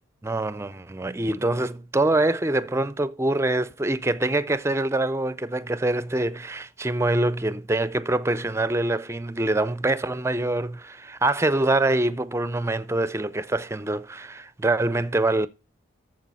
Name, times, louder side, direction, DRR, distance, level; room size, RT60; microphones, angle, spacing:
voice 1, 0.2-15.5, right 2 dB, 15° right, 0.4 m, -25 dB
13.5 x 4.9 x 4.1 m
head